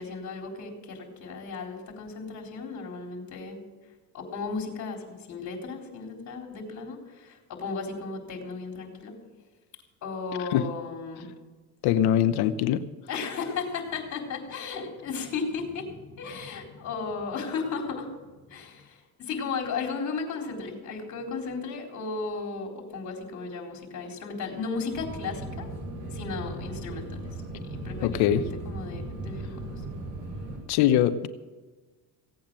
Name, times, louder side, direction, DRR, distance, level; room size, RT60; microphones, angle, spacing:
voice 1, 0.0-3.6 4.1-9.2 10.0-11.3 13.1-18.1 18.5-25.7 26.1-29.6, left 4 dB, 45° left, 2 dB, 4.1 m, -35 dB
voice 2, 11.8-12.8 28.0-28.5 30.7-31.3, left 11 dB, 70° left, 12 dB, 0.9 m, -22 dB
sound 1, 24.9-30.6, right 2 dB, 50° right, 6.6 m, -37 dB
17.0 x 8.6 x 7.6 m, 1.3 s
supercardioid pair, 110°, 40 cm